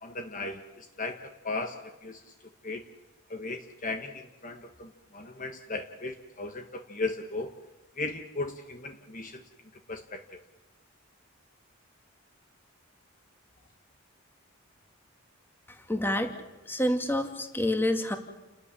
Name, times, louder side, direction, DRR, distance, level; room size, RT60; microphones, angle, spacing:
voice 1, 0.0-1.2 1.4-2.2 2.6-2.8 3.3-7.5 8.0-9.4 9.9-10.2, left 3 dB, 40° left, 6 dB, 1.4 m, -36 dB
voice 2, 15.9-16.3 16.7-18.2, left 1 dB, 10° left, 6 dB, 2.2 m, -27 dB
29.5 x 13.5 x 9.9 m, 1.1 s
head